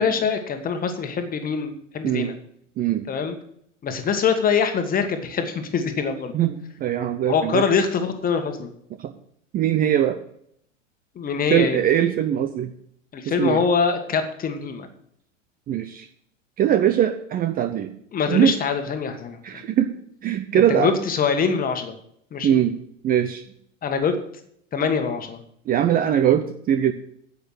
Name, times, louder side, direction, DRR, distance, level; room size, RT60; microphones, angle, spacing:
voice 1, 0.0-2.3 3.1-3.3 3.8-6.4 7.2-8.7 11.1-11.8 13.1-14.9 18.1-19.6 20.5-21.9 22.3-22.6 23.8-24.2 24.7-25.4, left 6 dB, 20° left, 7 dB, 1.7 m, -24 dB
voice 2, 2.8-3.1 6.3-7.6 9.0-9.1 9.5-10.2 11.5-12.7 13.3-13.6 15.7-16.1 16.6-17.9 18.3-18.5 19.4-20.0 20.2-20.9 22.4-22.7 23.0-23.4 25.7-26.9, right 10 dB, 20° right, 9 dB, 0.7 m, -21 dB
10.0 x 8.5 x 6.4 m, 0.69 s
figure-of-eight pair, 90°, 39 cm